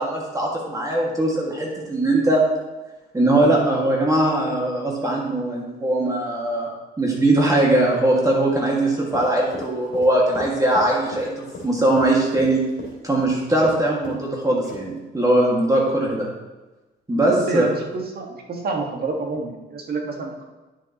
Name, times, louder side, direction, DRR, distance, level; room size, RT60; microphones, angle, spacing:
voice 1, 0.0-2.4 3.1-6.7 7.0-12.6 13.0-16.3 17.1-17.7, right 1 dB, 15° right, -3 dB, 2.0 m, -20 dB
Run, 9.1-13.8 14.0-14.3 14.6-15.0, left 2 dB, 65° left, 2.7 m, -36 dB
voice 2, 17.1-20.4, right 3 dB, 50° right, 1 dB, 1.7 m, -28 dB
10.5 x 6.4 x 3.0 m, 1.1 s
cardioid pair, 90°, 20 cm